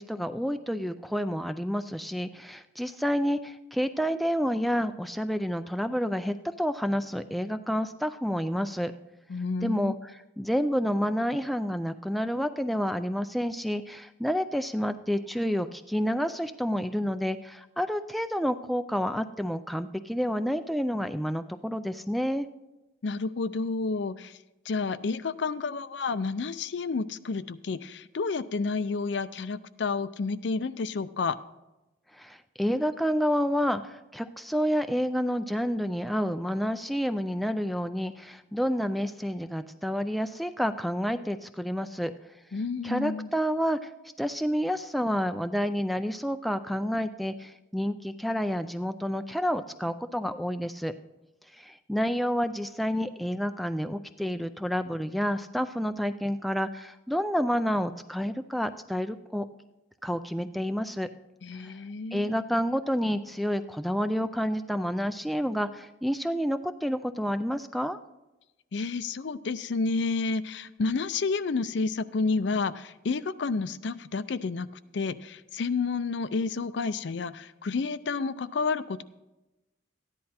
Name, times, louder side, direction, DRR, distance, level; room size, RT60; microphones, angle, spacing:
voice 1, 0.0-8.9 9.6-22.5 32.1-42.1 42.8-43.9 44.2-50.9 51.5-59.5 60.0-61.1 61.5-61.7 62.1-68.0, equal, ahead, 9 dB, 0.3 m, -29 dB
voice 2, 9.3-9.9 23.0-24.4 24.7-31.4 42.5-43.3 61.4-62.4 68.7-74.7 74.9-79.0, left 4 dB, 65° left, 14 dB, 0.5 m, -30 dB
14.0 x 10.5 x 4.3 m, 1.0 s
head